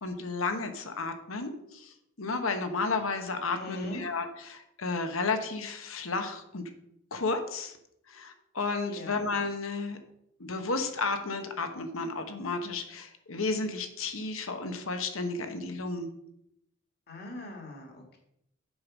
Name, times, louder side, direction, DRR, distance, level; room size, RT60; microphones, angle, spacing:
voice 1, 0.0-6.6 7.1-7.8 8.1-10.0 10.4-16.1, left 3 dB, 85° left, 7 dB, 1.1 m, -32 dB
voice 2, 3.5-4.0 8.9-9.2 17.1-18.2, left 1 dB, 55° left, 2 dB, 1.9 m, -41 dB
7.7 x 5.3 x 6.1 m, 0.77 s
head